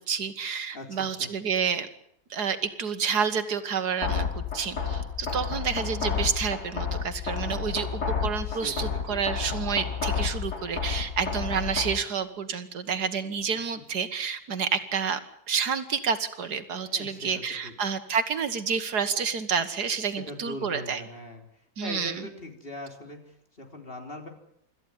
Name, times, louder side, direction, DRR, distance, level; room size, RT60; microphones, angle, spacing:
voice 1, 0.1-1.9 2.3-15.2 15.5-21.0 21.8-22.3, right 6 dB, 70° right, 10 dB, 2.0 m, -29 dB
voice 2, 0.7-1.3 7.4-7.7 8.5-9.2 16.8-17.7 20.2-21.4 21.8-24.3, left 1 dB, 35° left, 4 dB, 3.9 m, -41 dB
sound 1, 4.0-12.0, left 6 dB, 70° left, 3.1 m, -31 dB
26.0 x 14.0 x 9.6 m, 0.72 s
omnidirectional pair, 1.8 m